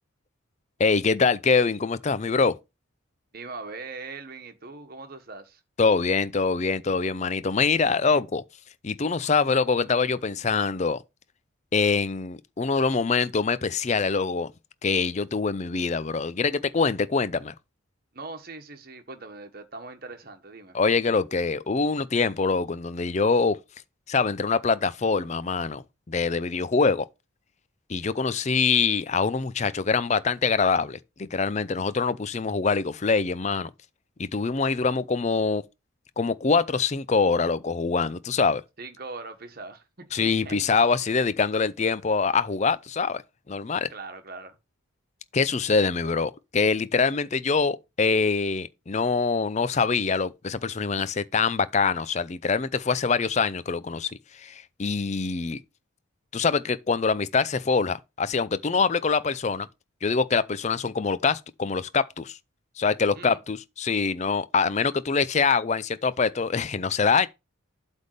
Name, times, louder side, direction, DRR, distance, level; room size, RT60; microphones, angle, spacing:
voice 1, 0.8-2.6 5.8-8.4 8.8-11.0 11.7-14.5 14.8-17.5 20.7-23.6 24.1-27.1 27.9-33.7 34.2-35.6 36.2-38.6 40.1-43.2 43.5-43.9 45.3-55.6 56.3-59.7 60.0-62.4 62.8-67.3, left 4 dB, 35° left, 0.5 m, -24 dB
voice 2, 3.3-5.6 18.1-20.8 38.8-40.6 43.9-44.6 63.1-63.4, right 3 dB, 45° right, 1.3 m, -41 dB
8.0 x 3.6 x 6.6 m
head